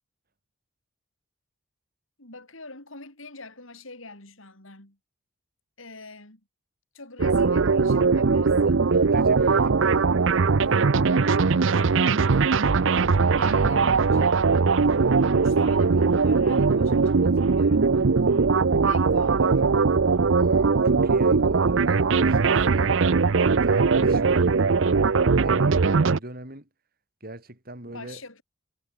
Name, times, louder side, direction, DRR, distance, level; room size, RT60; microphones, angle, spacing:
voice 1, 2.2-5.0 5.8-6.4 6.9-9.1 9.4-9.7 10.6-12.6 13.4-14.7 15.3-17.9 18.8-19.6 27.9-28.4, left 2 dB, 65° left, 5.8 m, -44 dB
sound 1, 7.2-26.2, right 4 dB, 60° right, 0.6 m, -20 dB
voice 2, 9.1-10.1 11.8-11.9 13.7-13.8 15.8-16.1 20.4-23.1 23.5-25.1 25.4-26.7 27.2-28.2, right 1 dB, 45° right, 5.0 m, -39 dB
head